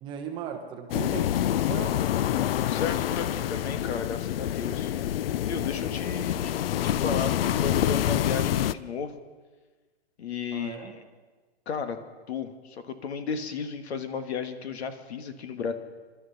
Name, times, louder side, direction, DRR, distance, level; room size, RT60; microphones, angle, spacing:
voice 1, 0.0-2.1 10.5-11.0, right 8 dB, 15° right, 3 dB, 0.8 m, -37 dB
sound 1, 0.9-8.7, left 11 dB, 60° left, 0.5 m, -27 dB
voice 2, 2.5-4.9 5.4-9.2 10.2-11.0 11.6-12.0 12.3-15.7, left 6 dB, 80° left, 8 dB, 1.7 m, -34 dB
26.5 x 12.5 x 4.0 m, 1.3 s
hypercardioid pair, 170°, 32 cm